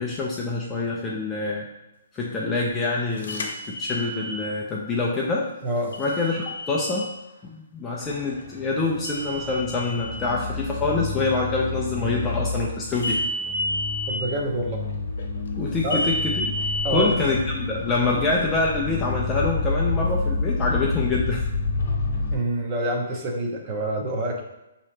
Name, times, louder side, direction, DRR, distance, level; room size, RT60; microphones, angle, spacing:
voice 1, 0.0-1.7 2.1-5.5 6.0-7.1 7.4-13.2 15.6-16.5 16.9-21.5, left 3 dB, 10° left, -3 dB, 0.4 m, -26 dB
sound 1, 3.2-4.4 5.9-7.0 9.0-10.1 13.0-14.1 15.9-17.0, left 1 dB, 75° left, 0.8 m, -30 dB
voice 2, 5.6-5.9 14.1-14.8 15.8-16.0 16.8-17.2 22.3-24.4, right 1 dB, 20° right, 0 dB, 0.7 m, -26 dB
sound 2, 8.0-22.4, left 3 dB, 50° left, 1.0 m, -29 dB
5.9 x 2.8 x 3.2 m, 0.96 s
hypercardioid pair, 170°, 0 cm